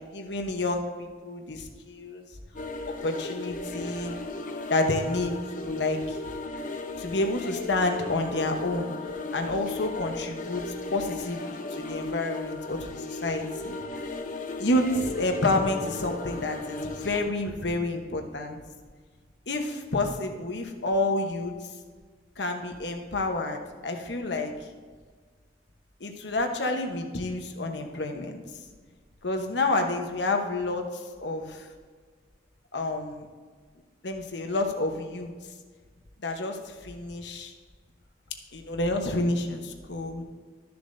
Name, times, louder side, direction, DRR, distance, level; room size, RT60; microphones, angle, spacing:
voice 1, 0.1-2.3 2.9-4.1 4.7-6.2 7.0-8.9 9.3-13.8 14.6-18.6 19.5-21.5 22.4-24.7 26.0-28.4 29.2-31.7 32.7-33.3 34.0-35.3 36.2-37.5 38.5-40.2, left 2 dB, 75° left, 4 dB, 1.0 m, -29 dB
sound 1, 2.5-17.2, left 3 dB, 45° left, 0.7 m, -36 dB
13.0 x 6.9 x 2.7 m, 1.5 s
head